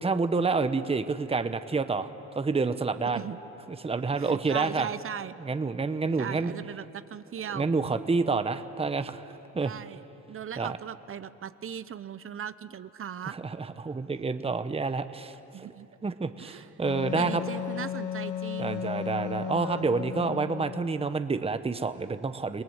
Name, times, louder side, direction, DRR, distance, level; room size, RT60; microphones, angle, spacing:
voice 1, 0.0-2.1 2.4-3.2 3.8-4.9 5.4-6.5 7.5-9.2 9.5-9.7 10.6-10.8 13.3-15.3 16.0-17.4 18.6-22.6, right 4 dB, 20° right, 10 dB, 1.0 m, -28 dB
voice 2, 4.1-5.3 6.2-7.7 9.6-10.0 10.3-13.4 15.5-15.9 16.4-16.7 17.2-18.9, right 9 dB, 45° right, 14 dB, 0.8 m, -38 dB
Wind instrument woodwind instrument, 16.8-20.9, left 9 dB, 75° left, 1.3 m, -35 dB
29.5 x 19.5 x 8.0 m, 2.9 s
cardioid pair, 90°, 30 cm